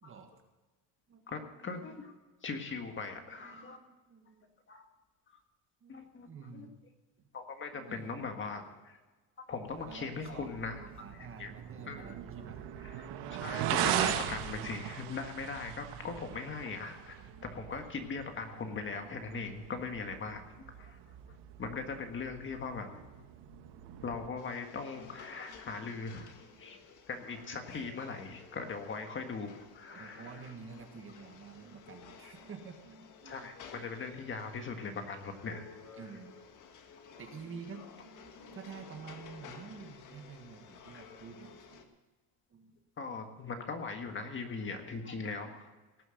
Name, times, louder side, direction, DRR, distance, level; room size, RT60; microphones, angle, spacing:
voice 1, 0.0-0.3 1.1-1.9 2.9-4.5 5.8-6.7 7.7-8.1 9.8-12.6 16.7-16.8 17.3-17.9 18.5-18.6 19.0-19.7 24.9-26.9 27.4-27.9 29.8-33.5 34.1-34.3 35.9-36.4 37.2-41.9 42.5-42.7, right 5 dB, 30° right, 5 dB, 1.6 m, -51 dB
voice 2, 1.3-2.1 2.4-3.8 4.7-4.8 5.9-6.3 6.5-6.7 7.3-9.0 9.5-10.8 11.4-11.5 11.9-12.2 12.8-13.1 13.4-21.0 21.3-23.0 24.0-26.8 27.1-30.4 32.2-32.3 33.3-35.7 43.0-45.7, left 4 dB, 25° left, 5 dB, 1.6 m, -40 dB
sound 1, 9.7-24.3, right 10 dB, 70° right, 1.5 m, -39 dB
sound 2, 24.4-41.8, left 6 dB, 45° left, 1.7 m, -54 dB
18.5 x 7.8 x 6.6 m, 1.2 s
cardioid pair, 155°, 43 cm